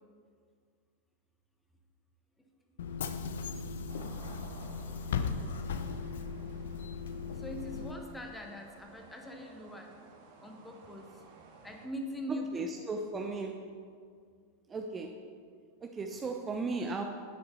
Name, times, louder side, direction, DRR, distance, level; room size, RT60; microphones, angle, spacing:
Bus / Engine, 2.8-7.9, left 5 dB, 60° left, 0.7 m, -37 dB
sound 1, 3.9-11.9, right 4 dB, 50° right, 1.8 m, -56 dB
voice 1, 7.4-9.9 10.4-11.1 11.6-13.0 13.7-13.8, equal, 10° left, 2 dB, 1.5 m, -42 dB
voice 2, 12.3-13.7 14.7-15.2 15.8-17.0, right 3 dB, 20° right, 3 dB, 0.7 m, -36 dB
11.0 x 9.7 x 4.2 m, 2.1 s
figure-of-eight pair, 90°, 0 cm